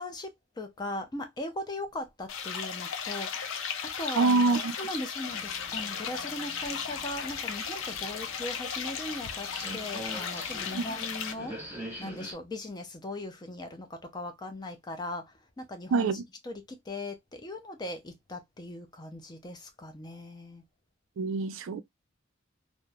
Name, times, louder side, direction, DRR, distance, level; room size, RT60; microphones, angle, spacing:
voice 1, 0.0-11.6 12.0-20.6, left 1 dB, 20° left, 0.4 m, -39 dB
sound 1, 2.3-11.3, left 6 dB, 80° left, 0.5 m, -36 dB
voice 2, 4.1-4.7 10.7-10.9 15.9-16.2 21.2-21.8, right 3 dB, 75° right, 0.4 m, -25 dB
sound 2, 5.3-12.3, equal, 10° right, 0.9 m, -45 dB
2.9 x 2.0 x 2.2 m
head